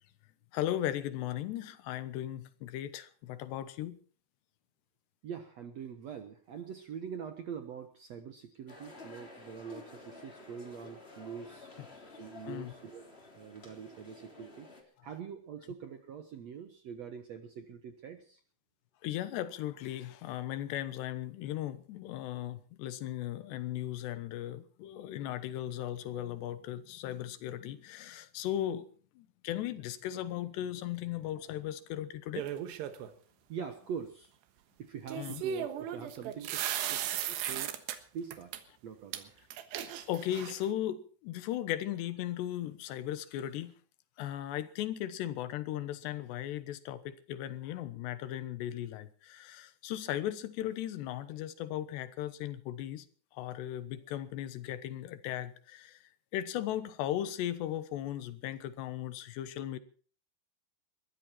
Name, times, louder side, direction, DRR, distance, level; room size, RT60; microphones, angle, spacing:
voice 1, 0.5-4.0 11.8-11.9 12.5-12.7 15.0-15.1 15.6-15.7 19.0-28.9 29.2-32.5 35.1-35.4 40.1-43.7 44.2-53.0 53.3-56.0 56.3-59.8, left 12 dB, 85° left, 3.3 m, -37 dB
voice 2, 5.2-11.7 12.2-13.0 13.3-14.7 15.0-18.4 33.5-34.3 34.8-37.7 38.1-38.5 38.8-39.3, right 7 dB, 70° right, 1.6 m, -44 dB
sound 1, 8.7-14.8, left 2 dB, 15° left, 2.8 m, -51 dB
sound 2, 32.4-33.1 35.1-38.0 38.3-38.6 39.1-39.2 39.5-40.7, right 10 dB, 90° right, 3.5 m, -36 dB
21.5 x 14.0 x 4.4 m
omnidirectional pair, 4.8 m